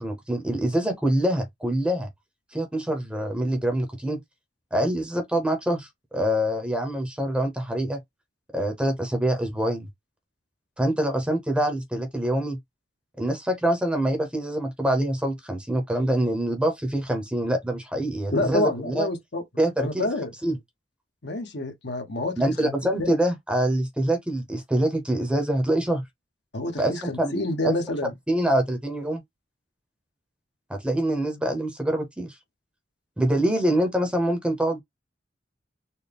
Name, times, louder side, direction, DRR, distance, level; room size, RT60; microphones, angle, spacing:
voice 1, 0.0-2.1 2.5-4.2 4.7-8.0 8.5-9.9 10.8-12.6 13.2-19.1 19.6-20.1 20.4-20.6 22.4-26.0 26.8-27.3 27.6-27.7 28.3-29.2 30.7-32.3 33.2-34.8, right 1 dB, 5° right, 0.9 m, -25 dB
voice 2, 18.3-19.4 19.8-20.3 21.2-22.7 23.0-23.1 26.5-28.1, left 2 dB, 65° left, 1.1 m, -28 dB
4.2 x 2.3 x 3.5 m
head